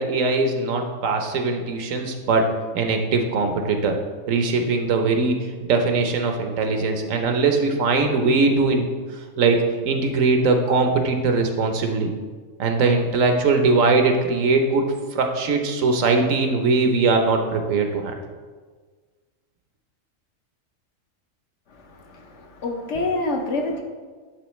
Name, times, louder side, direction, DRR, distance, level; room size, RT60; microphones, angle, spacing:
voice 1, 0.0-2.5 2.7-4.0 4.3-5.4 5.7-8.9 9.4-12.1 12.6-14.9 15.1-18.1, right 3 dB, 80° right, 4 dB, 1.1 m, -21 dB
voice 2, 21.7-23.8, left 2 dB, 65° left, 3 dB, 1.1 m, -27 dB
11.0 x 3.7 x 3.1 m, 1.5 s
omnidirectional pair, 1.4 m